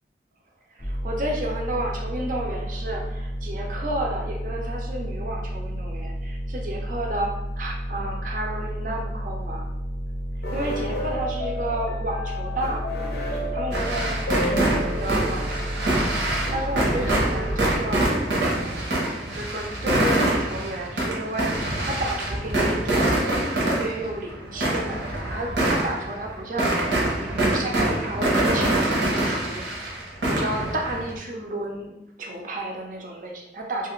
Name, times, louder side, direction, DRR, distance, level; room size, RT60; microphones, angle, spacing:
voice 1, 0.7-9.7 10.5-18.0 18.4-18.9 19.3-33.9, right 1 dB, 50° right, 1 dB, 0.5 m, -32 dB
sound 1, 0.8-17.8, equal, 25° left, 0.4 m, -31 dB
sound 2, 10.4-18.1, equal, 70° left, 0.6 m, -33 dB
sound 3, 13.7-31.2, right 1 dB, 90° right, 0.8 m, -25 dB
2.7 x 2.4 x 3.0 m, 0.86 s
head